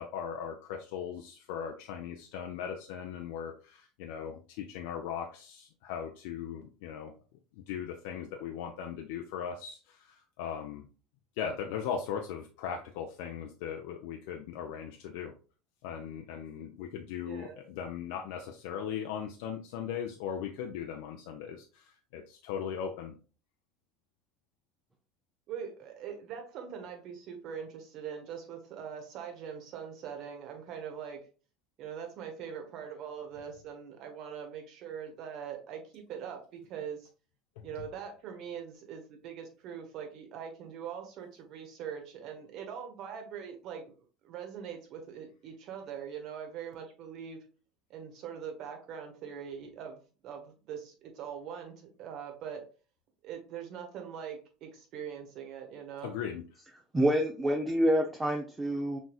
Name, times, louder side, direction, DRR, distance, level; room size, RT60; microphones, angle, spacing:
voice 1, 0.0-7.1 7.7-10.9 11.4-15.3 15.8-23.1 37.6-37.7 56.0-56.4, left 8 dB, 65° left, 3 dB, 0.6 m, -38 dB
voice 2, 17.2-17.6 25.5-31.2 31.8-37.1 37.6-43.9 44.2-47.4 47.9-51.7 52.0-52.6 53.2-56.1, right 7 dB, 55° right, 4 dB, 1.4 m, -42 dB
voice 3, 56.9-59.0, equal, 20° right, 3 dB, 0.8 m, -27 dB
6.2 x 3.6 x 2.4 m, 0.36 s
hypercardioid pair, 75°, 0 cm